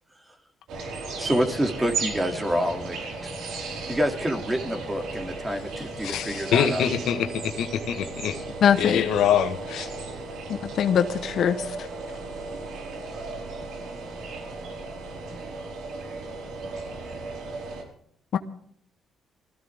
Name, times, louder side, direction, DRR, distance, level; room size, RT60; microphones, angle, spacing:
sound 1, 0.7-17.8, right 3 dB, 80° right, 4.9 m, -35 dB
voice 1, 1.2-3.3 3.6-6.9, equal, 15° right, 4 dB, 2.7 m, -28 dB
voice 2, 6.0-8.4 8.8-9.9, left 9 dB, 80° left, 7 dB, 1.5 m, -25 dB
voice 3, 8.6-9.0 10.5-11.9 18.3-18.4, left 8 dB, 65° left, 10 dB, 1.0 m, -22 dB
20.0 x 15.0 x 3.6 m, 0.64 s
cardioid pair, 90°, 0 cm